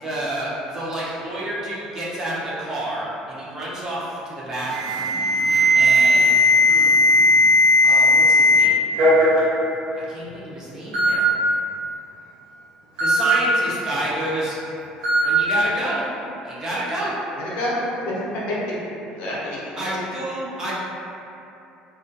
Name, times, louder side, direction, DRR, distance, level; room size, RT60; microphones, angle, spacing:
voice 1, 0.0-5.1 5.7-6.4 7.8-8.9 9.9-11.3 13.0-14.6 15.2-16.1 16.4-17.1 19.8-20.7, right 1 dB, 20° right, -8 dB, 0.4 m, -29 dB
Alarm, 4.7-8.6 9.0-9.4 10.2-10.3 10.9-11.1 13.0-13.2 15.0-15.2, left 1 dB, 55° right, 1.0 m, -16 dB
voice 2, 6.6-7.1 17.4-18.8 19.2-19.6, left 1 dB, 65° left, -6 dB, 0.6 m, -28 dB
2.2 x 2.2 x 2.6 m, 2.8 s
cardioid pair, 175°, 3 cm